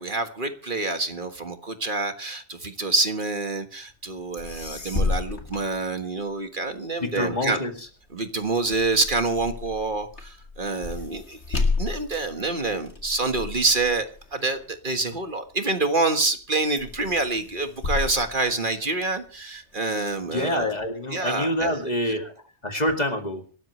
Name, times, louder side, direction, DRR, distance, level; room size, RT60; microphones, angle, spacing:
voice 1, 0.0-7.6 8.1-20.7 21.1-21.8, right 3 dB, 50° right, 7 dB, 1.7 m, -27 dB
sound 1, 4.4-6.5 6.9-15.6 16.1-16.5 16.8-19.3 19.7-20.7, left 3 dB, 75° left, 2.6 m, -32 dB
voice 2, 7.0-7.7 20.3-22.3 22.6-23.4, left 1 dB, 40° left, 4 dB, 2.4 m, -26 dB
27.0 x 13.0 x 3.2 m, 0.37 s
omnidirectional pair, 1.1 m